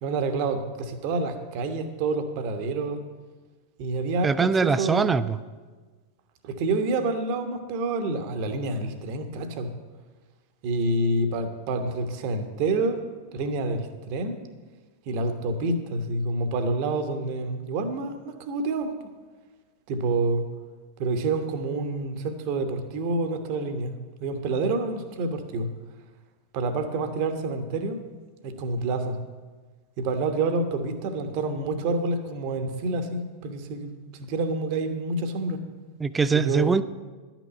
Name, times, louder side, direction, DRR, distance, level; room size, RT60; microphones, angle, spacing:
voice 1, 0.0-3.0 3.8-5.1 6.4-9.7 10.6-13.0 13.3-14.4 15.1-18.9 19.9-20.4 21.0-25.7 26.5-28.0 28.4-29.2 30.0-35.6 36.3-36.8, right 3 dB, 45° right, 8 dB, 1.2 m, -28 dB
voice 2, 4.2-5.4 36.0-36.8, right 5 dB, 15° right, 15 dB, 0.4 m, -22 dB
11.5 x 6.0 x 8.0 m, 1.4 s
figure-of-eight pair, 90°, 0 cm